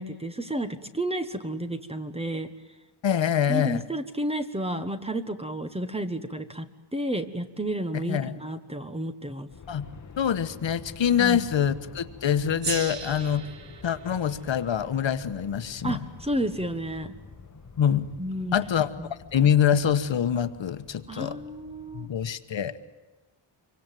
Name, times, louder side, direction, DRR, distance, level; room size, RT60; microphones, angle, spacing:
voice 1, 0.0-2.5 3.5-9.5 11.1-11.4 15.8-17.1 18.2-18.6 19.0-19.1 21.1-22.1, right 1 dB, 10° right, 9 dB, 1.3 m, -31 dB
voice 2, 3.0-3.8 8.1-8.3 9.7-9.9 10.2-13.5 13.8-16.0 17.8-18.1 18.5-18.9 19.3-21.4 21.9-22.9, left 8 dB, 65° left, 10 dB, 1.4 m, -25 dB
Aircraft, 9.5-22.3, left 5 dB, 35° left, 2.0 m, -47 dB
Gong, 12.6-17.4, right 5 dB, 60° right, 2.9 m, -39 dB
26.0 x 24.0 x 9.2 m, 1.1 s
wide cardioid pair, 170°, 49 cm